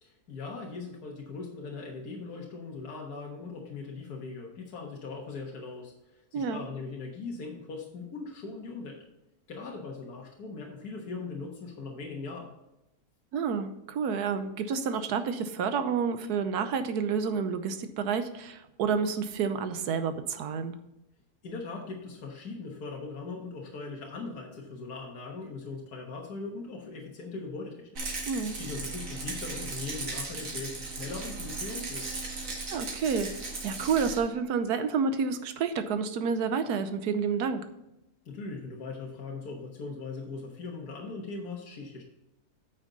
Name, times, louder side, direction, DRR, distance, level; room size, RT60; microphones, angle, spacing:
voice 1, 0.0-9.0 9.5-12.5 21.4-27.9 28.2-32.1 38.3-42.0, left 4 dB, 80° left, -1 dB, 1.8 m, -40 dB
voice 2, 6.3-6.6 13.3-20.7 28.3-28.6 32.7-33.3 33.6-37.6, right 6 dB, 85° right, 10 dB, 1.3 m, -29 dB
Rattle, 27.9-34.2, right 3 dB, 60° right, 2.2 m, -37 dB
9.1 x 6.2 x 3.9 m, 0.91 s
omnidirectional pair, 1.6 m